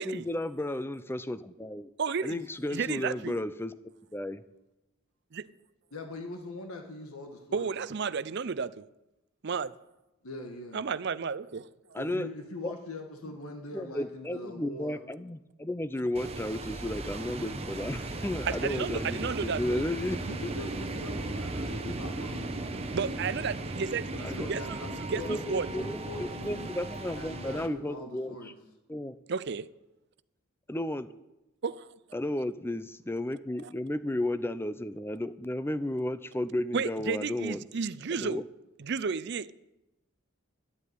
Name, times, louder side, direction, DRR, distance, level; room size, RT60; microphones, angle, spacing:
voice 1, 0.0-1.9 2.2-3.7 4.1-4.4 11.9-12.3 12.6-12.7 13.3-13.4 13.7-20.3 24.2-24.5 25.2-25.4 25.7-28.5 28.9-29.2 30.7-31.1 32.1-37.6 38.1-38.4, left 1 dB, 10° left, 0.5 m, -33 dB
voice 2, 2.0-2.4 2.7-3.4 5.3-5.5 7.5-8.9 9.4-9.7 10.7-11.7 18.5-19.9 22.9-25.7 29.3-29.7 31.6-32.0 36.7-38.4 38.8-39.5, right 5 dB, 50° right, 0.5 m, -32 dB
voice 3, 5.9-7.9 10.2-10.8 12.0-15.0 20.3-23.0 24.1-26.7 27.1-28.5, left 2 dB, 85° left, 1.6 m, -42 dB
sound 1, 16.1-27.7, right 2 dB, 30° right, 1.0 m, -36 dB
12.0 x 8.3 x 9.4 m
head